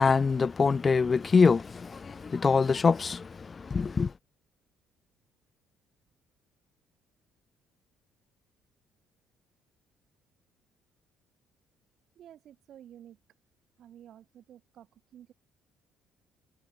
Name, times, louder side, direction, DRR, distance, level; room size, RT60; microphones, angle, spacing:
voice 1, 0.0-4.1, left 5 dB, 30° left, 0.8 m, -24 dB
voice 2, 12.2-13.2 13.8-15.3, right 10 dB, 60° right, 7.0 m, -52 dB
cardioid pair, 115°, 0 cm